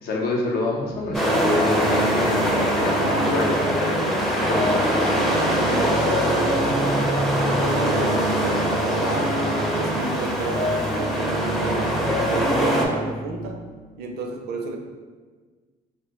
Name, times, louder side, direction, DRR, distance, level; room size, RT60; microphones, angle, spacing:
voice 1, 0.0-5.3, left 2 dB, 65° left, -1 dB, 0.6 m, -27 dB
sound 1, 0.9-12.7, equal, 30° left, 0.8 m, -29 dB
sound 2, 1.1-12.9, equal, ahead, 0.4 m, -23 dB
Keyboard (musical), 5.6-13.9, equal, 90° left, 0.9 m, -38 dB
voice 2, 5.6-9.4 9.7-13.6 14.0-14.8, right 3 dB, 70° right, 3 dB, 0.4 m, -31 dB
2.5 x 2.1 x 3.7 m, 1.4 s
cardioid pair, 110°, 17 cm